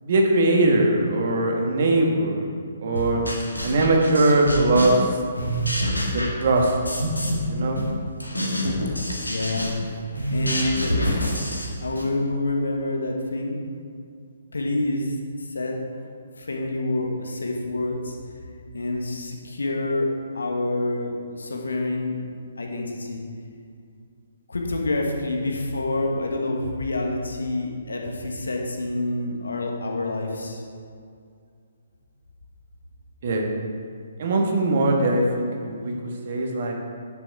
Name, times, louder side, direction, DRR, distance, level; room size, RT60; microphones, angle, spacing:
voice 1, 0.0-2.5 2.8-3.2 3.6-5.1 6.1-6.9 7.5-7.8 33.2-33.5 34.2-36.7, right 2 dB, 50° right, 1 dB, 1.5 m, -21 dB
sound 1, 3.0-5.1 5.3-7.5 7.8-12.1, equal, 85° left, 1.8 m, -27 dB
voice 2, 9.3-9.8 10.3-13.6 14.5-15.8 16.4-18.2 18.7-22.2 22.6-23.2 24.5-30.6, left 2 dB, 70° left, 1 dB, 1.6 m, -27 dB
9.9 x 6.9 x 4.7 m, 2.3 s
figure-of-eight pair, 130°, 0 cm